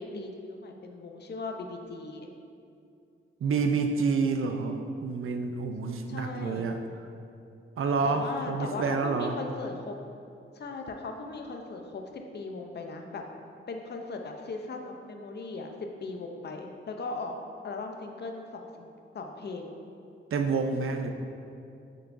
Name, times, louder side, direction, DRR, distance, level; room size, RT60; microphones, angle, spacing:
voice 1, 0.0-2.3 6.1-6.7 8.0-10.0 10.5-13.2 13.7-15.7 16.0-17.4 17.6-18.9 19.1-19.7, left 3 dB, 50° left, 3 dB, 0.6 m, -38 dB
voice 2, 3.4-6.8 7.8-9.3 20.3-21.1, right 4 dB, 75° right, 5 dB, 0.5 m, -28 dB
6.7 x 6.2 x 2.6 m, 2.5 s
wide cardioid pair, 115°, 21 cm